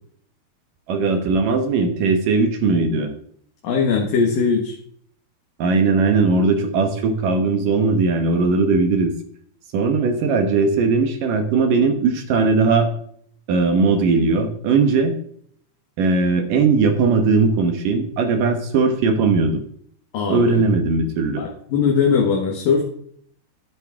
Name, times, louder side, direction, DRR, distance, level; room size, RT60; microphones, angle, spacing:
voice 1, 0.9-3.1 5.6-9.1 9.7-12.9 13.5-15.1 16.0-19.6 20.3-21.4, right 4 dB, 65° right, 6 dB, 2.6 m, -19 dB
voice 2, 3.6-4.8 20.1-20.6 21.4-22.9, left 5 dB, 65° left, 0 dB, 3.1 m, -20 dB
12.5 x 10.5 x 3.6 m, 0.62 s
omnidirectional pair, 4.7 m